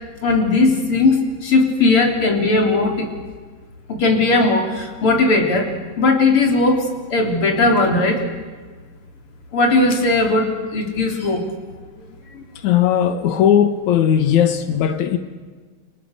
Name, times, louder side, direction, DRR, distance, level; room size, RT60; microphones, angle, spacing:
voice 1, 0.2-3.1 3.9-5.7 6.0-6.9 7.1-8.2 9.5-10.5 10.7-11.4 12.3-12.4, left 3 dB, 30° left, 3 dB, 3.9 m, -17 dB
voice 2, 12.6-15.2, left 9 dB, 90° left, 9 dB, 1.6 m, -17 dB
30.0 x 27.0 x 6.7 m, 1.5 s
omnidirectional pair, 5.5 m